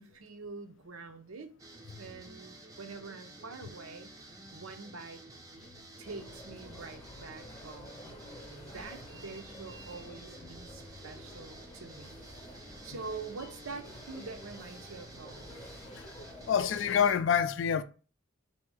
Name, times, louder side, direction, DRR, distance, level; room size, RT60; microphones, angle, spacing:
voice 1, 0.0-1.5 2.0-4.1 4.5-5.2 6.0-8.2 8.4-12.2 12.6-15.5, right 4 dB, 75° right, 0.6 m, -45 dB
sound 1, 1.6-17.2, right 2 dB, 15° right, 0.5 m, -52 dB
sound 2, 6.0-17.1, left 1 dB, 20° left, 0.8 m, -50 dB
voice 2, 16.5-17.8, left 7 dB, 60° left, 0.3 m, -27 dB
3.5 x 2.8 x 4.7 m
head